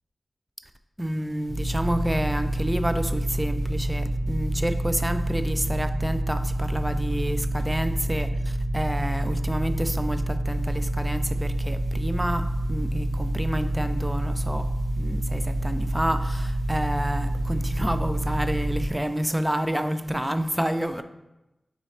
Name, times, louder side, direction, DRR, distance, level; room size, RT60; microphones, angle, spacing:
voice 1, 1.0-14.7 15.0-21.0, equal, 10° right, 9 dB, 0.3 m, -29 dB
sound 1, 1.5-18.9, right 1 dB, 45° right, 0.8 m, -27 dB
4.0 x 3.1 x 4.2 m, 0.97 s
cardioid pair, 50°, 0 cm